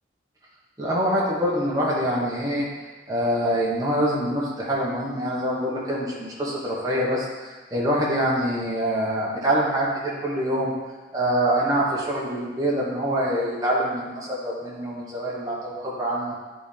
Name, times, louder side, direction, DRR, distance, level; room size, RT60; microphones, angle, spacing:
voice 1, 0.8-2.6 3.1-10.7 11.1-16.3, equal, 20° right, -6 dB, 1.4 m, -25 dB
10.0 x 3.6 x 3.5 m, 1.4 s
head